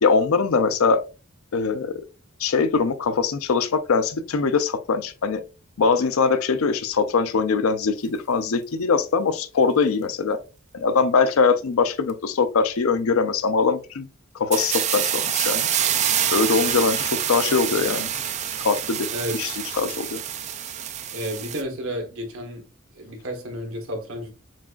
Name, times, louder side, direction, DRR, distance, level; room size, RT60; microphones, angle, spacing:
voice 1, 0.0-1.0 1.5-2.0 2.4-5.4 5.8-10.4 10.7-14.1 14.4-15.7 16.3-18.1 18.6-19.1 19.3-20.2, left 5 dB, 90° left, 0.5 m, -22 dB
sound 1, 14.5-21.6, right 9 dB, 35° right, 0.4 m, -26 dB
voice 2, 19.1-19.5 21.1-22.7 22.9-24.3, equal, 70° right, 1.3 m, -31 dB
7.3 x 2.5 x 2.4 m
head